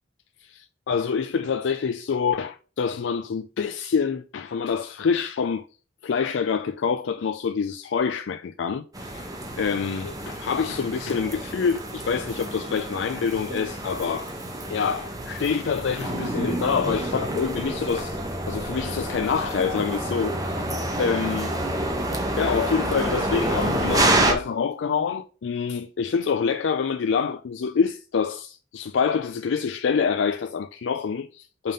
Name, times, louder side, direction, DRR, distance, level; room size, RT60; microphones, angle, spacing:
voice 1, 0.4-5.6 6.0-9.3 9.6-14.3 14.7-18.2 18.5-20.7 21.0-21.5 22.4-31.7, left 6 dB, 90° left, 0.4 m, -26 dB
sound 1, 8.9-24.3, right 1 dB, 20° right, 1.1 m, -28 dB
5.6 x 3.6 x 5.2 m
head